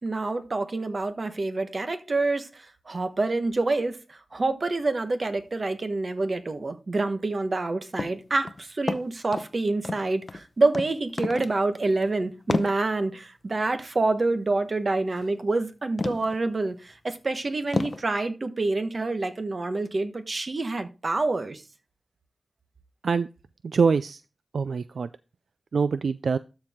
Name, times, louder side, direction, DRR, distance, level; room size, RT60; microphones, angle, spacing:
voice 1, 0.0-21.6, right 3 dB, 45° right, 1.2 m, -27 dB
sound 1, 8.0-8.2 8.5-9.5 9.8-10.4 10.7-10.9 11.2-11.6 11.8-12.0 12.5-12.7 15.1-15.3 16.0-16.4 16.9-17.0 17.7-18.0, left 3 dB, 45° left, 0.7 m, -30 dB
voice 2, 23.6-24.2 24.5-25.1 25.7-26.4, right 5 dB, 75° right, 0.3 m, -24 dB
13.0 x 4.6 x 3.6 m
wide cardioid pair, 85°, 0 cm